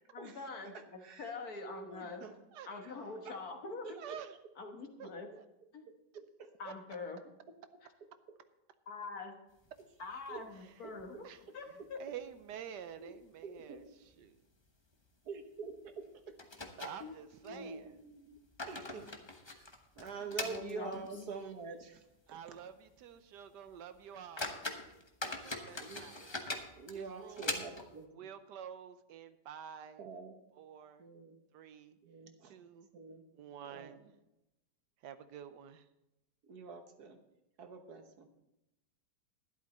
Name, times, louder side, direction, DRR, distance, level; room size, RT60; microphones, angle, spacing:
voice 1, 0.1-2.2 2.7-4.0 4.6-5.3 5.7-5.9 6.6-7.2 8.9-9.4 10.0-11.2 11.5-12.0 13.0-13.2 17.0-17.2 17.5-17.7 20.2-21.3, left 3 dB, 60° left, 4 dB, 1.8 m, -45 dB
voice 2, 1.0-1.4 1.6-2.4 2.8-2.9 3.2-3.4 3.8-4.2 6.1-6.5 10.3-10.4 10.8-10.9 13.4-13.9 15.2-16.4 16.9-17.0 17.4-18.4 18.7-19.1 19.5-19.7 20.0-22.0 22.3-22.4 25.8-26.0 26.8-28.1 30.0-30.3 31.0-31.4 32.0-32.5 32.9-33.2 33.6-34.0 36.4-37.2 37.6-38.3, right 5 dB, 65° right, 6 dB, 1.6 m, -46 dB
voice 3, 4.0-4.3 5.4-5.5 6.6-6.7 10.6-10.7 11.2-11.4 12.0-13.8 14.2-14.4 16.8-18.0 22.3-24.6 25.3-26.3 26.9-30.1 30.5-31.0 31.5-32.0 32.4-32.9 33.3-34.0 35.0-35.9, right 9 dB, 80° right, 11 dB, 1.3 m, -49 dB
sound 1, 9.6-10.6 10.9-11.0 11.4-11.5 12.1-12.6 12.9-13.0 13.6-13.8 14.1-14.3 15.7-15.8 16.4-17.6 18.2-21.4 21.8-21.9 22.4-22.5 23.0-23.1 23.7-23.8 24.1-28.0, left 2 dB, 20° left, 0.8 m, -42 dB
12.0 x 11.0 x 4.2 m, 0.90 s
omnidirectional pair, 1.8 m